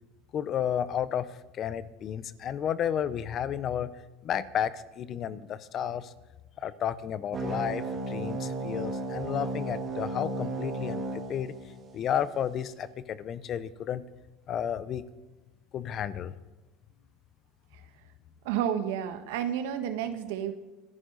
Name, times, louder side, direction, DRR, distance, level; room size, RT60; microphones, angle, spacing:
voice 1, 0.3-3.9 4.2-6.1 6.6-11.5 11.9-14.0 14.5-15.0 15.7-16.3, left 9 dB, 40° left, 15 dB, 0.8 m, -32 dB
sound 1, 7.3-12.3, right 2 dB, 30° right, 3.1 m, -34 dB
voice 2, 18.4-20.5, right 9 dB, 80° right, 8 dB, 1.6 m, -30 dB
26.5 x 10.5 x 4.1 m, 1.1 s
supercardioid pair, 135°, 0 cm